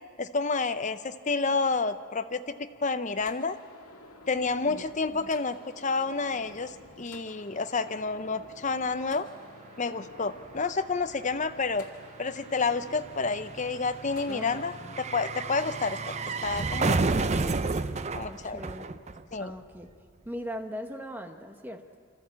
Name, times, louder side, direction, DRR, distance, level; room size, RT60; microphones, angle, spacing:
voice 1, 0.2-3.6 4.3-9.3 9.8-11.8 12.2-16.0 16.4-17.0 18.1-18.6 19.3-19.5, left 4 dB, 35° left, 10 dB, 0.6 m, -29 dB
sound 1, 3.2-15.9, left 2 dB, 85° left, 2.1 m, -51 dB
sound 2, 8.9-9.0 9.2-19.6 19.8-19.9, right 3 dB, 30° right, 0.5 m, -32 dB
voice 2, 14.3-14.9 18.1-19.0 19.4-19.9 20.2-22.0, equal, 10° right, 5 dB, 1.0 m, -40 dB
25.5 x 14.0 x 8.5 m, 2.2 s
head